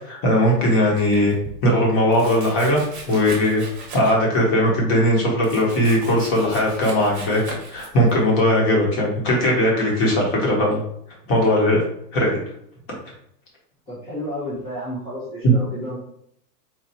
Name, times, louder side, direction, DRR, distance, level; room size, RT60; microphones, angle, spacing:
voice 1, 0.0-1.3 1.6-2.8 3.1-3.6 3.9-7.4 7.7-10.8 11.3-11.8 12.1-12.4 15.4-15.5, equal, 25° left, -2 dB, 1.0 m, -19 dB
Domestic sounds home sounds, 1.0-1.6 2.1-4.4 4.7-8.2, right 3 dB, 25° right, 0.9 m, -39 dB
voice 2, 13.9-16.0, equal, 10° left, -10 dB, 0.5 m, -31 dB
4.3 x 2.5 x 2.7 m, 0.72 s
hypercardioid pair, 145°, 49 cm